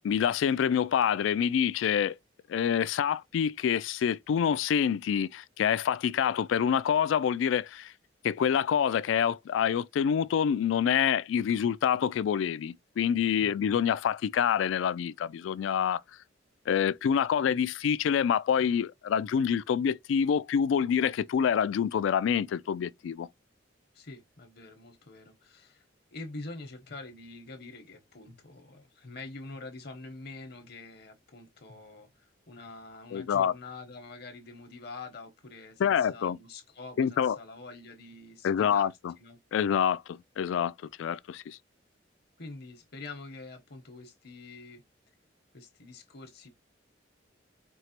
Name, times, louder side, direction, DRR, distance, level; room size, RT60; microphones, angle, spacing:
voice 1, 0.0-2.2 2.5-7.9 8.2-16.0 16.7-23.3 33.1-33.5 35.8-36.4 37.0-37.4 38.4-39.1 39.5-40.7 41.0-41.6, left 8 dB, 80° left, 0.3 m, -27 dB
voice 2, 23.9-25.9 26.1-39.4 42.4-44.8 45.5-46.5, left 3 dB, 60° left, 0.9 m, -46 dB
4.6 x 2.9 x 2.9 m
head